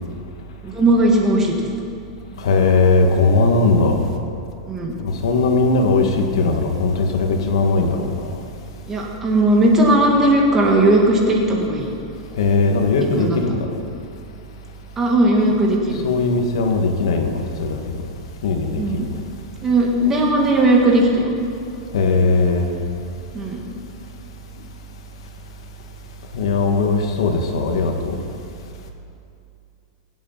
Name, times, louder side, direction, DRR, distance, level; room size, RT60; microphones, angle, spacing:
voice 1, 0.6-1.5 4.7-4.9 8.9-11.8 13.1-13.4 15.0-16.0 18.7-19.1 19.6-21.4 23.3-23.6, right 1 dB, 15° right, 0 dB, 1.8 m, -17 dB
voice 2, 2.4-4.0 5.0-8.3 12.4-13.8 16.0-17.8 18.4-19.1 21.9-22.7 26.3-28.2, left 3 dB, 70° left, 3 dB, 2.1 m, -19 dB
24.0 x 8.0 x 5.9 m, 2.6 s
supercardioid pair, 170°, 3 cm